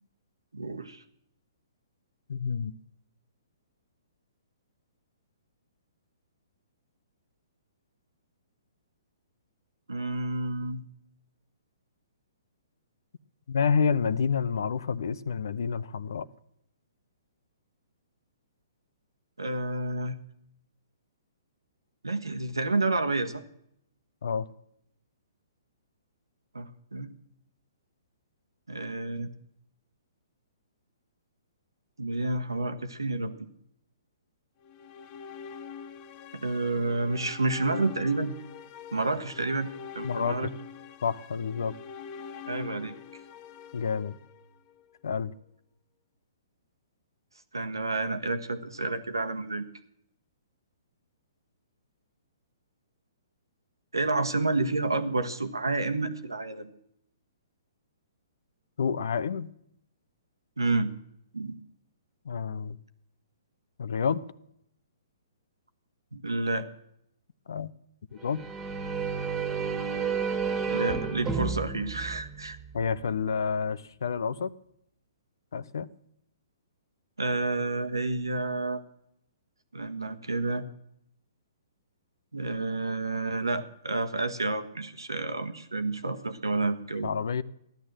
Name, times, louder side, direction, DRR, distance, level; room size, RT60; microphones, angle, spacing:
voice 1, 0.5-1.0 9.9-10.8 19.4-20.2 22.0-23.4 26.5-27.1 28.7-29.3 32.0-33.3 36.4-38.3 38.9-39.7 39.9-40.5 42.5-42.9 47.5-49.6 53.9-56.7 60.6-60.9 61.3-61.5 66.1-66.7 70.7-72.6 77.2-78.8 79.7-80.6 82.3-87.1, right 2 dB, 85° right, 1.4 m, -29 dB
voice 2, 2.3-2.8 13.5-16.3 24.2-24.5 40.0-40.4 41.0-41.7 43.7-44.2 45.0-45.3 58.8-59.5 62.2-62.8 63.8-64.2 67.5-67.7 68.1-68.4 72.7-74.5 75.5-75.9 87.0-87.4, left 6 dB, 65° left, 0.8 m, -29 dB
sound 1, 34.6-44.8, left 6 dB, 30° left, 0.9 m, -44 dB
sound 2, 68.2-72.9, right 6 dB, 15° right, 1.8 m, -31 dB
15.0 x 11.5 x 7.7 m
figure-of-eight pair, 125°, 2 cm